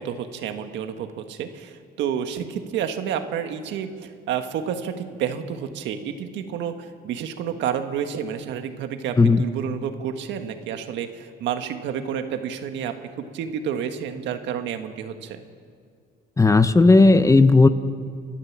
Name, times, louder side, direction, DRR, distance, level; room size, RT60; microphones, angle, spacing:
voice 1, 0.0-15.4, right 8 dB, 90° right, 7 dB, 1.6 m, -30 dB
voice 2, 16.4-17.7, left 3 dB, 20° left, 12 dB, 0.8 m, -14 dB
30.0 x 12.0 x 7.4 m, 2.1 s
cardioid pair, 110°, 18 cm